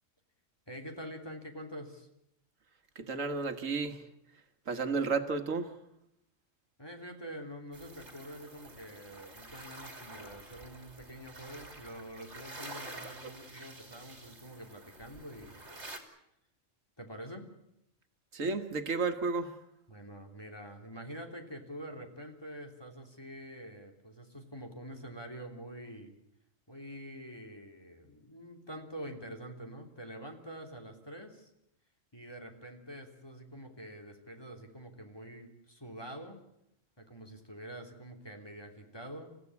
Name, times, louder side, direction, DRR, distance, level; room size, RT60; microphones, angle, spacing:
voice 1, 0.7-2.1 6.8-16.0 17.0-17.5 19.9-26.1 26.7-31.5 32.1-36.4 37.0-39.3, equal, 20° left, 4 dB, 3.2 m, -46 dB
voice 2, 3.0-4.0 4.7-5.7 18.3-19.5, right 4 dB, 85° right, 8 dB, 1.9 m, -32 dB
sound 1, 7.7-16.0, right 2 dB, 60° right, 3.2 m, -49 dB
28.0 x 15.0 x 9.7 m, 0.81 s
omnidirectional pair, 1.3 m